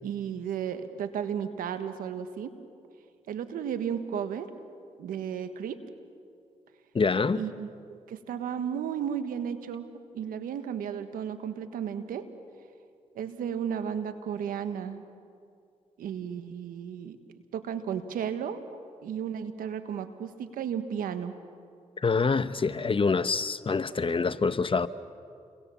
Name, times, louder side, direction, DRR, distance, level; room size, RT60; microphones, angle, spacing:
voice 1, 0.0-2.5 3.3-4.5 5.0-5.8 7.3-9.9 10.1-12.2 13.1-15.0 16.0-17.2 17.5-18.6 19.0-21.4, right 8 dB, 90° right, 1.4 m, -34 dB
voice 2, 6.9-7.4 22.0-24.9, left 4 dB, 40° left, 1.0 m, -26 dB
29.5 x 23.5 x 7.2 m
cardioid pair, 55°, 14 cm